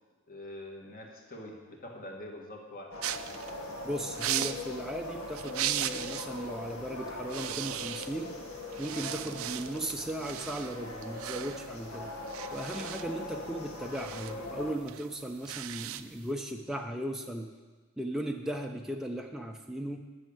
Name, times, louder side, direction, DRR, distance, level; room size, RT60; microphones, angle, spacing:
voice 1, 0.3-3.0, left 1 dB, 45° left, 0 dB, 1.9 m, -44 dB
sound 1, 2.9-14.7, left 2 dB, 80° left, 1.5 m, -41 dB
sound 2, 3.0-6.4 6.7-6.9 7.2-8.4 8.7-16.3, right 12 dB, 75° right, 0.4 m, -38 dB
voice 2, 3.8-8.3 8.8-12.1 12.5-17.5 18.0-20.1, right 1 dB, ahead, 1 dB, 0.5 m, -37 dB
11.0 x 6.4 x 8.7 m, 1.3 s
head